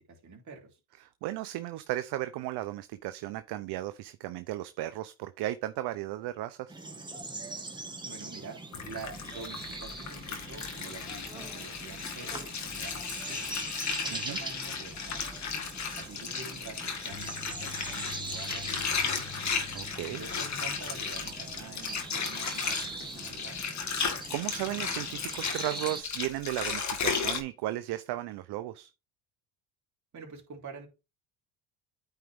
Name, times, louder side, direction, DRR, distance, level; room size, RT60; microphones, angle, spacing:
voice 1, 0.0-0.8 8.0-13.7 14.0-15.2 16.0-19.4 20.1-23.6 30.1-30.9, right 5 dB, 40° right, 3.4 m, -47 dB
voice 2, 1.0-6.7 14.1-14.4 19.7-20.2 24.3-28.9, right 15 dB, 60° right, 0.7 m, -35 dB
sound 1, 6.7-26.0, right 2 dB, 10° right, 1.6 m, -42 dB
Water, 8.7-27.4, left 5 dB, 35° left, 1.9 m, -35 dB
sound 2, 17.1-22.1, left 8 dB, 85° left, 3.5 m, -49 dB
9.1 x 4.5 x 3.6 m
supercardioid pair, 100°, 46 cm